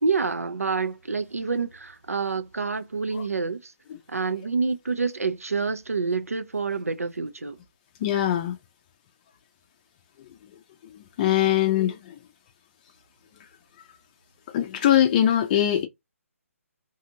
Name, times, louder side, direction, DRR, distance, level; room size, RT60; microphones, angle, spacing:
voice 1, 0.0-3.7 4.1-7.6, right 4 dB, 80° right, 0.5 m, -27 dB
voice 2, 8.0-8.6 11.2-12.2 14.5-15.9, left 11 dB, 30° left, 0.4 m, -22 dB
2.7 x 2.4 x 2.8 m
figure-of-eight pair, 135°, 8 cm